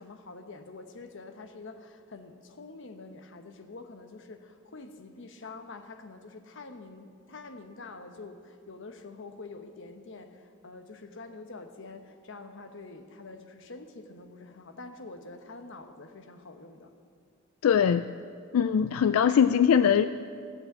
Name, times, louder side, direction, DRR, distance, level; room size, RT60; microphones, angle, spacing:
voice 1, 0.0-16.9, left 3 dB, 60° left, 8 dB, 1.0 m, -46 dB
voice 2, 17.6-18.1 18.5-20.1, left 8 dB, 90° left, 12 dB, 0.3 m, -21 dB
16.0 x 6.4 x 8.6 m, 2.3 s
head